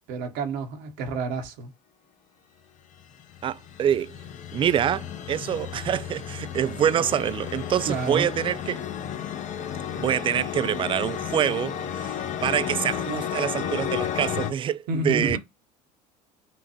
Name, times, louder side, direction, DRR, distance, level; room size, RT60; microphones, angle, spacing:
voice 1, 0.1-1.7 7.9-8.3 14.9-15.4, right 3 dB, 55° right, 1.2 m, -29 dB
sound 1, 2.9-14.5, left 9 dB, 40° left, 1.1 m, -33 dB
voice 2, 3.4-4.1 4.5-8.8 9.9-12.2 12.4-15.4, right 9 dB, 25° right, 0.4 m, -26 dB
6.0 x 2.5 x 2.9 m
hypercardioid pair, 70°, 20 cm